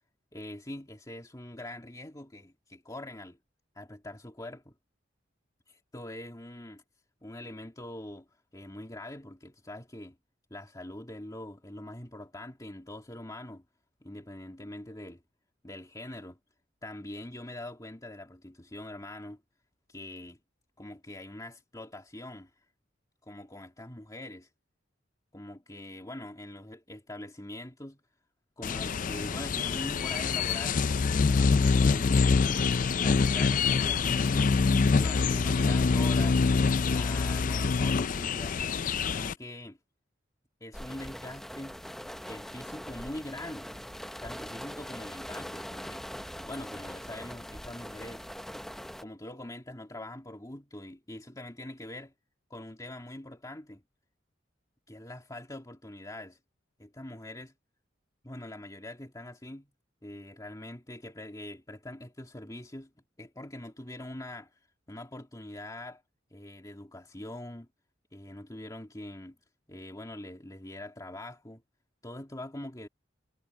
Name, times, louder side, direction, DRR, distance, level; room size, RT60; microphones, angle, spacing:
voice 1, 0.3-3.4 3.8-4.7 5.7-6.8 7.2-10.2 10.5-13.6 14.0-15.2 15.6-16.4 16.8-19.4 19.9-20.4 20.8-22.5 23.2-24.5 25.3-28.0 28.6-32.6 33.0-34.5 34.9-36.4 36.9-38.6 39.1-39.8 40.6-41.8 42.3-43.8 44.2-46.0 46.5-48.3 49.0-52.1 52.5-53.8 54.9-56.4 56.8-57.5 58.2-59.7 60.0-62.9 63.2-64.6 64.9-66.0 66.3-67.7 68.1-69.4 69.7-71.6 72.0-72.9, left 1 dB, 20° left, 2.4 m, -43 dB
sound 1, 28.6-39.3, left 4 dB, 45° left, 0.4 m, -25 dB
sound 2, 40.7-49.0, equal, ahead, 0.7 m, -42 dB
head